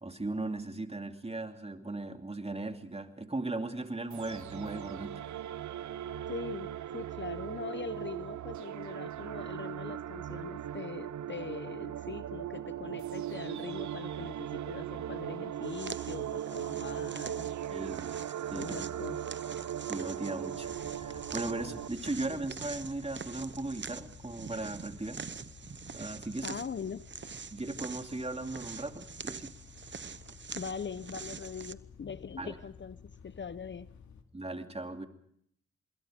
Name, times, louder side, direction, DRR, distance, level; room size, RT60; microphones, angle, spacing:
voice 1, 0.0-5.1 17.7-18.2 18.5-18.9 19.9-25.2 25.9-26.6 27.5-29.5 32.4-32.5 34.3-35.1, right 2 dB, 20° right, 6 dB, 2.6 m, -37 dB
sound 1, 4.1-21.9, right 10 dB, 75° right, 0.8 m, -39 dB
voice 2, 6.3-6.7 6.9-17.5 18.5-19.2 22.3-22.4 26.4-27.1 30.5-33.9, left 6 dB, 40° left, 16 dB, 0.8 m, -42 dB
sound 2, 15.6-31.7, right 6 dB, 40° right, 1.0 m, -45 dB
sound 3, 20.5-34.2, left 6 dB, 75° left, 2.4 m, -53 dB
26.5 x 21.5 x 5.2 m, 0.68 s
supercardioid pair, 50°, 29 cm